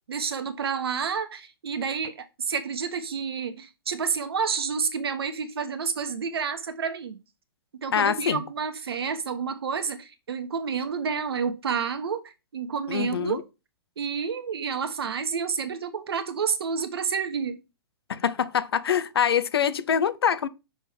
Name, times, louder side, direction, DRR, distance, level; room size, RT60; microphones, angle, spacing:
voice 1, 0.1-7.2 7.8-13.4 14.0-17.6, right 6 dB, 80° right, 1.2 m, -29 dB
voice 2, 7.9-8.4 12.9-13.4 18.1-20.5, left 8 dB, 80° left, 0.7 m, -24 dB
6.1 x 3.6 x 5.6 m
hypercardioid pair, 120°, 13 cm